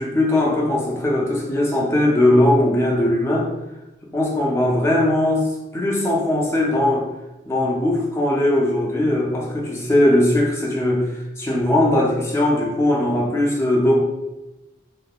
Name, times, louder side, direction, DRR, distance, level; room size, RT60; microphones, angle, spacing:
voice 1, 0.0-3.5 4.1-7.0 7.5-14.0, left 1 dB, 15° left, -3 dB, 0.4 m, -19 dB
2.9 x 2.1 x 2.3 m, 1.0 s
head